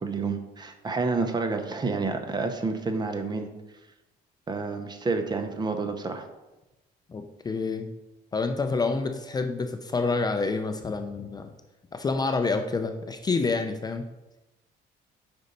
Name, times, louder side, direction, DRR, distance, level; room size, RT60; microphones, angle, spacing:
voice 1, 0.0-3.5 4.5-6.2, right 4 dB, 25° right, 6 dB, 0.7 m, -29 dB
voice 2, 7.1-7.9 8.3-11.5 11.9-14.0, left 4 dB, 25° left, 6 dB, 0.4 m, -28 dB
5.3 x 4.0 x 5.2 m, 1.0 s
cardioid pair, 110°, 17 cm